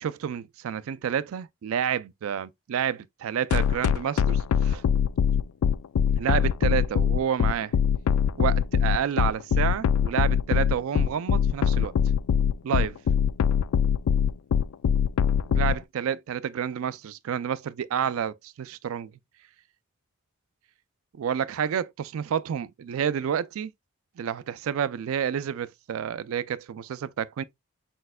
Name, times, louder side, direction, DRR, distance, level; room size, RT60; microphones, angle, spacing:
voice 1, 0.0-4.8 6.2-7.7 8.4-11.9 12.6-13.0 15.5-19.1 21.2-23.7 24.2-27.4, right 8 dB, 75° right, 0.3 m, -29 dB
sound 1, 3.5-15.8, left 7 dB, 85° left, 0.3 m, -22 dB
4.4 x 4.2 x 2.2 m
head